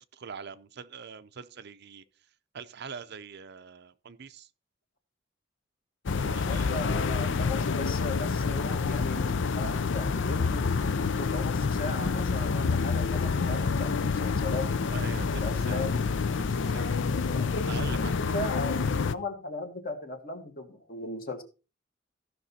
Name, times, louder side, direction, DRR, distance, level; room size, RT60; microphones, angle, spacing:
voice 1, 0.1-2.0 2.5-4.5 6.2-6.8 14.9-15.8 16.4-17.1 17.7-18.4, right 6 dB, 55° right, 0.6 m, -43 dB
sound 1, 6.1-19.2, left 4 dB, 65° left, 0.5 m, -28 dB
voice 2, 6.4-10.7 11.0-14.7 15.3-16.0 17.3-17.7 18.0-21.4, left 2 dB, 50° left, 1.9 m, -37 dB
14.5 x 5.9 x 4.2 m
head